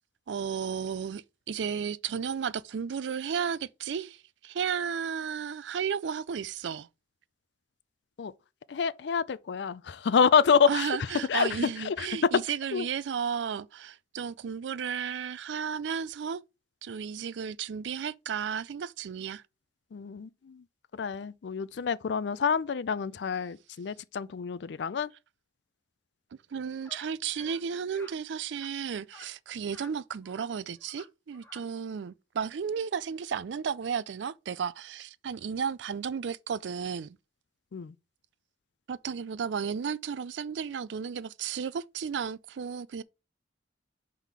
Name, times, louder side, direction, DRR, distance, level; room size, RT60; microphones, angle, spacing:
voice 1, 0.3-6.9 10.7-16.4 16.8-19.4 26.5-37.2 38.9-43.0, right 7 dB, 75° right, 0.4 m, -33 dB
voice 2, 8.7-12.4 12.7-12.9 19.9-20.6 20.9-25.1 37.7-37.9, left 6 dB, 70° left, 0.4 m, -27 dB
sound 1, 26.8-27.1 27.3-27.6 27.9-28.2 28.5-28.7 29.1-29.3 29.7-29.9 30.2-30.5 30.8-31.1 31.3-31.6, left 2 dB, 10° left, 1.2 m, -51 dB
5.7 x 3.6 x 4.6 m
head